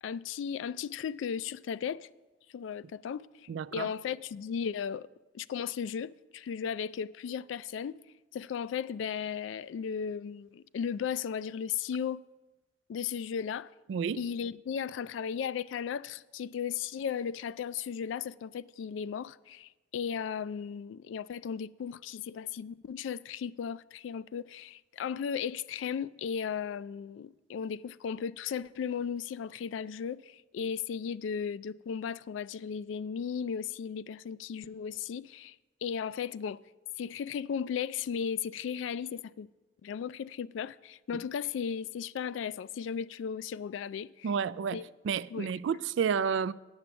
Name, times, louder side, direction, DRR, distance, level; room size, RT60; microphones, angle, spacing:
voice 1, 0.0-2.1 2.5-5.1 5.3-8.0 8.3-12.2 12.9-13.7 14.2-35.6 35.8-36.6 37.0-39.5 39.8-44.3 44.7-44.8 45.3-45.5, left 7 dB, 80° left, 0.3 m, -36 dB
voice 2, 3.5-3.9 13.9-14.2 44.2-46.5, right 7 dB, 70° right, 0.3 m, -31 dB
8.9 x 7.0 x 6.9 m
head